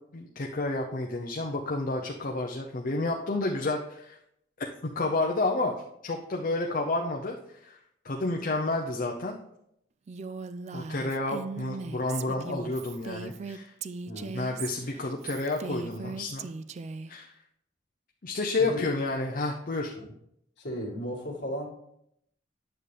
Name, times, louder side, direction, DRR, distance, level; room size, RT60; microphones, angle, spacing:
voice 1, 0.1-4.2 5.0-5.7 6.0-7.8 8.0-9.4 10.7-13.7 14.3-16.5 17.1-17.4 18.2-19.9, left 2 dB, 45° left, 1 dB, 0.6 m, -30 dB
Female speech woman speaking, 10.1-17.1, right 4 dB, 35° right, 0.3 m, -38 dB
voice 2, 14.1-14.5 18.6-18.9 19.9-20.1 20.6-21.7, equal, 60° left, -3 dB, 2.0 m, -36 dB
9.8 x 6.8 x 3.3 m, 0.77 s
head